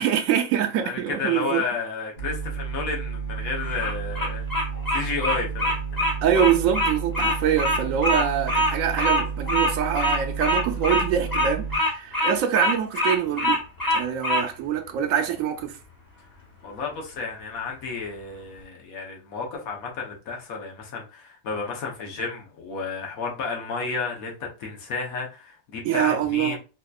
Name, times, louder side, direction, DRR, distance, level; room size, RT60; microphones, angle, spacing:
voice 1, 0.0-1.6 6.2-13.6 13.9-15.8 25.8-26.6, right 9 dB, 75° right, 1.0 m, -24 dB
voice 2, 0.8-4.5 4.9-6.1 16.6-26.6, left 4 dB, 85° left, 1.3 m, -32 dB
sound 1, 2.2-11.8, right 6 dB, 45° left, 1.9 m, -32 dB
Bird vocalization bird call bird song, 3.6-14.5, left 1 dB, 20° left, 0.8 m, -24 dB
4.2 x 2.7 x 2.3 m
omnidirectional pair, 1.5 m